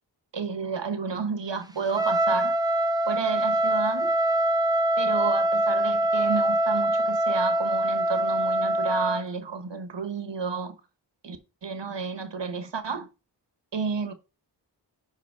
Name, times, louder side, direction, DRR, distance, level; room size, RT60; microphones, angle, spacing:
voice 1, 0.3-2.6 3.1-4.1 5.0-10.7 11.2-13.1 13.7-14.1, right 5 dB, 75° right, 1.1 m, -31 dB
Trumpet, 1.9-9.2, right 1 dB, 10° right, 1.0 m, -24 dB
5.5 x 4.9 x 4.6 m
wide cardioid pair, 45°, 44 cm